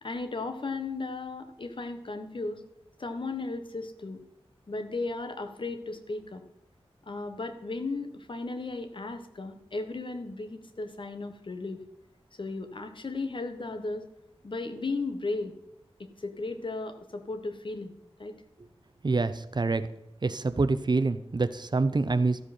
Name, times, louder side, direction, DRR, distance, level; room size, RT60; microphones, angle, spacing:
voice 1, 0.0-2.6 3.0-4.2 4.7-6.4 7.1-11.8 12.4-14.0 14.4-15.6 16.0-18.4, left 3 dB, 55° left, 7 dB, 1.2 m, -35 dB
voice 2, 19.0-19.9 20.2-22.4, right 3 dB, 45° right, 11 dB, 0.6 m, -26 dB
13.5 x 7.8 x 4.3 m, 0.83 s
wide cardioid pair, 75°, 10 cm